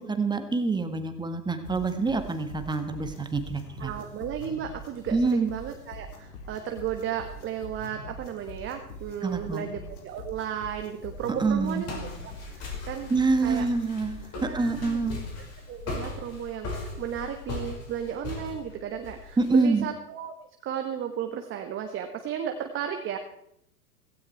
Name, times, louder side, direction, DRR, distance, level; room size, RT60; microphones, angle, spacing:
voice 1, 0.0-3.9 5.1-5.5 9.2-9.7 11.4-11.8 13.1-14.2 14.5-15.2 19.4-19.9, right 3 dB, 10° right, 8 dB, 1.6 m, -26 dB
sound 1, 1.6-15.3, left 1 dB, 65° left, 4.4 m, -44 dB
voice 2, 3.8-13.1 13.4-13.7 14.3-15.0 15.4-20.3 20.6-23.2, right 9 dB, 25° right, 5 dB, 1.5 m, -34 dB
Walk footsteps, 11.0-19.6, left 3 dB, 30° left, 5.3 m, -39 dB
16.5 x 16.5 x 4.5 m, 0.76 s
figure-of-eight pair, 105°, 47 cm